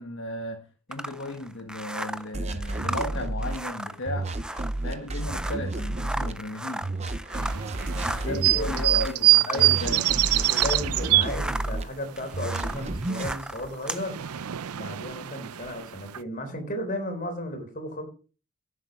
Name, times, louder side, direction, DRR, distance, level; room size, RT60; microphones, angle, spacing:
voice 1, 0.0-4.3 4.8-6.9 7.9-10.1, left 1 dB, 55° left, 1.3 m, -35 dB
sound 1, 0.9-10.9 11.2-14.1, right 1 dB, 5° right, 0.4 m, -36 dB
sound 2, 2.3-3.6 4.1-6.3 6.8-9.1 9.6-11.8 12.3-13.4, right 2 dB, 30° right, 0.8 m, -31 dB
sound 3, 7.4-11.9 12.2-13.4 13.6-16.2, right 16 dB, 90° right, 0.5 m, -24 dB
voice 2, 8.2-9.0 9.5-10.0 10.3-14.5 14.7-18.1, left 1 dB, 35° left, 3.7 m, -35 dB
10.5 x 7.6 x 5.8 m
head